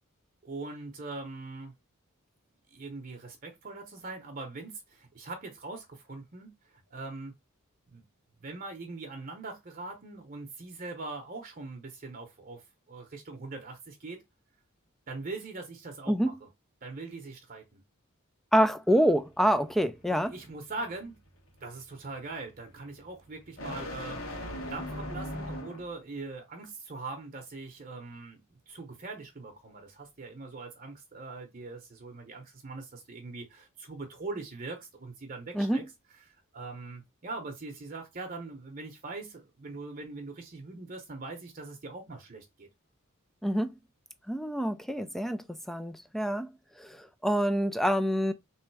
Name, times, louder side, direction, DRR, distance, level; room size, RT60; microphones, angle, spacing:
voice 1, 0.4-1.7 2.7-7.3 7.9-8.0 8.4-14.2 15.1-16.5 16.8-17.8 20.1-21.2 21.6-24.2 24.7-28.4 28.7-35.8 36.3-42.7, right 3 dB, 40° right, 0.8 m, -42 dB
voice 2, 18.5-20.3 35.5-35.8 43.4-43.7 44.3-46.5 46.8-48.3, equal, ahead, 0.3 m, -27 dB
sound 1, 19.1-26.0, left 1 dB, 65° left, 1.5 m, -41 dB
3.5 x 3.1 x 4.6 m
head